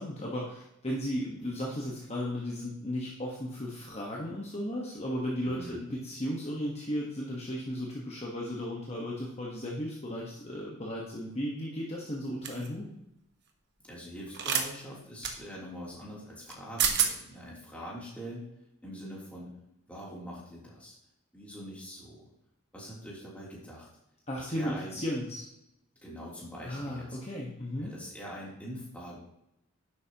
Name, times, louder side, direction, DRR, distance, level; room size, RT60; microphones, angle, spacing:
voice 1, 0.0-12.9 24.3-25.4 26.6-27.9, equal, 30° left, -3 dB, 1.4 m, -35 dB
sound 1, 12.4-12.7 14.3-14.7 15.2-15.3 16.5-16.6 16.8-17.1, right 7 dB, 50° right, 1.3 m, -27 dB
voice 2, 13.8-18.4 18.8-19.5 19.9-20.9 21.3-22.2 22.7-23.9 24.4-24.9 26.0-27.2 27.8-29.2, equal, 5° left, -6 dB, 3.3 m, -43 dB
11.0 x 8.2 x 3.0 m, 0.84 s
head